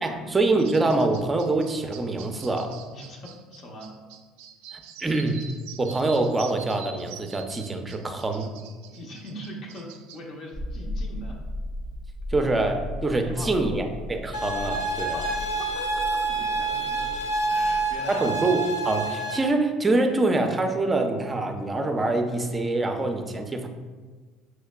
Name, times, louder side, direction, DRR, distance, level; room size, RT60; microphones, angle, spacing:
voice 1, 0.0-2.8 4.7-5.5 5.8-8.5 12.3-15.2 18.1-23.7, right 2 dB, 20° right, 5 dB, 0.5 m, -25 dB
sound 1, 0.6-10.2, right 8 dB, 75° right, 0.3 m, -46 dB
voice 2, 2.9-3.9 8.9-11.4 13.1-13.8 15.1-18.4, equal, 55° left, -1 dB, 0.7 m, -41 dB
sound 2, 10.5-18.0, left 1 dB, 20° left, 0.7 m, -37 dB
sound 3, 14.3-19.4, right 3 dB, 85° left, 0.5 m, -27 dB
5.5 x 3.1 x 2.2 m, 1.4 s
hypercardioid pair, 75°, 0 cm